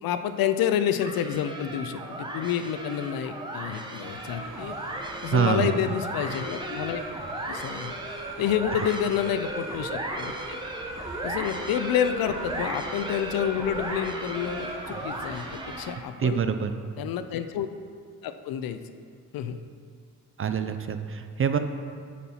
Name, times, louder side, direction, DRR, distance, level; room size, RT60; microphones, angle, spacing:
voice 1, 0.0-4.8 5.2-7.0 7.5-7.9 8.4-10.6 11.2-16.4 17.0-17.7 18.2-18.8 19.3-19.6, left 9 dB, 85° left, 9 dB, 0.5 m, -29 dB
sound 1, 1.0-16.1, right 1 dB, 15° right, 0.9 m, -35 dB
sound 2, 4.0-15.9, right 3 dB, 60° right, 1.1 m, -44 dB
voice 2, 5.3-5.8 16.2-16.7 20.4-21.6, right 7 dB, 40° right, 8 dB, 0.4 m, -25 dB
8.5 x 4.2 x 5.5 m, 2.1 s
cardioid pair, 100°, 34 cm